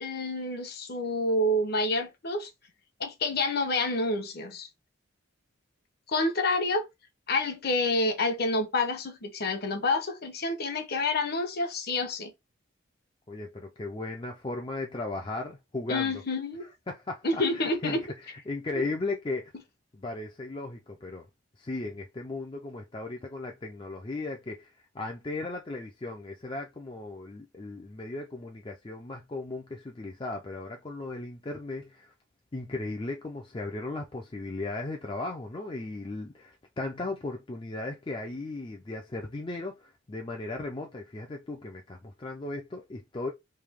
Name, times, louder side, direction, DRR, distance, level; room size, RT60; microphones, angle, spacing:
voice 1, 0.0-2.5 3.0-4.7 6.1-6.9 7.3-12.3 15.9-16.7 17.2-18.0 18.7-18.9, left 2 dB, 50° left, 0.8 m, -28 dB
voice 2, 13.3-16.2 16.9-18.0 18.5-19.5 19.9-21.2 21.6-32.1 32.5-43.3, left 2 dB, 25° left, 0.4 m, -36 dB
3.3 x 2.7 x 3.5 m
head